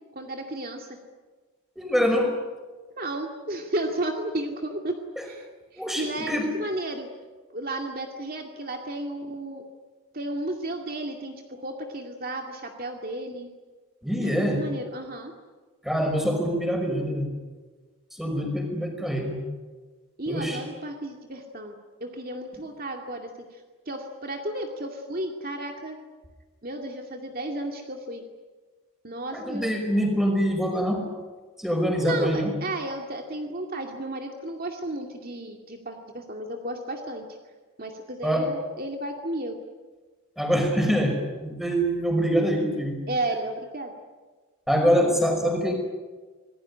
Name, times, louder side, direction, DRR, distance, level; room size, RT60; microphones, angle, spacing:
voice 1, 0.2-0.9 3.0-7.1 7.5-9.6 10.1-13.5 14.2-15.3 20.2-21.7 22.0-23.6 23.9-26.0 26.6-28.2 29.0-29.7 32.0-37.2 37.8-39.6 43.1-43.9, right 1 dB, 40° right, 2 dB, 2.3 m, -33 dB
voice 2, 1.8-2.3 5.2-5.3 5.8-6.5 14.0-14.6 15.8-17.3 18.1-19.4 20.3-20.6 29.3-31.1 31.6-32.5 38.2-38.5 40.4-43.0 44.7-45.7, equal, ahead, 3 dB, 5.4 m, -24 dB
26.5 x 20.0 x 9.9 m, 1.4 s
head